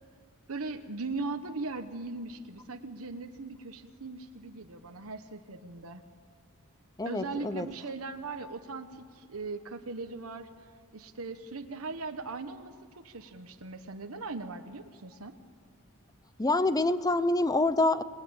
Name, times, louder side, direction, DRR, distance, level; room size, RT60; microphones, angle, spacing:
voice 1, 0.5-6.0 7.0-15.4, right 3 dB, 85° right, 7 dB, 1.2 m, -39 dB
voice 2, 7.0-7.7 16.4-18.0, left 2 dB, 15° left, 14 dB, 0.7 m, -26 dB
27.5 x 20.0 x 8.9 m, 2.2 s
head